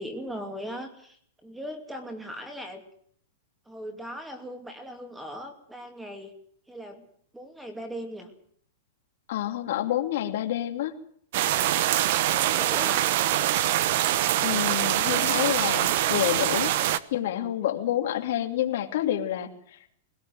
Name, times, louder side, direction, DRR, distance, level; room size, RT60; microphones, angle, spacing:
voice 1, 0.0-2.8 3.7-6.3 6.7-7.1 7.3-8.3 12.3-13.2, equal, 5° right, 6 dB, 2.6 m, -39 dB
voice 2, 9.3-10.9 14.4-16.7 17.1-19.8, left 12 dB, 60° left, 6 dB, 2.7 m, -28 dB
sound 1, 11.3-17.0, right 13 dB, 50° right, 1.1 m, -24 dB
20.0 x 18.0 x 7.8 m, 0.62 s
supercardioid pair, 160°, 0 cm